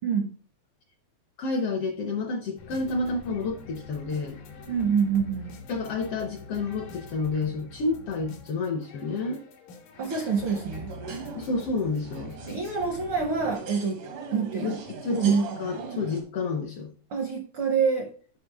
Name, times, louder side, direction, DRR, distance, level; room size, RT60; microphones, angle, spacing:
voice 1, 0.0-0.4 4.7-5.5 10.0-10.9 12.5-14.8 15.1-15.4 17.1-18.1, right 5 dB, 70° right, 3 dB, 1.2 m, -26 dB
voice 2, 1.4-4.4 5.7-9.4 11.3-12.3 14.6-16.9, left 3 dB, 70° left, 4 dB, 1.4 m, -30 dB
sound 1, 2.6-13.6, left 4 dB, 90° left, 2.9 m, -45 dB
sound 2, 10.0-16.2, right 5 dB, 85° right, 3.0 m, -40 dB
7.6 x 6.0 x 3.4 m, 0.41 s
omnidirectional pair, 3.5 m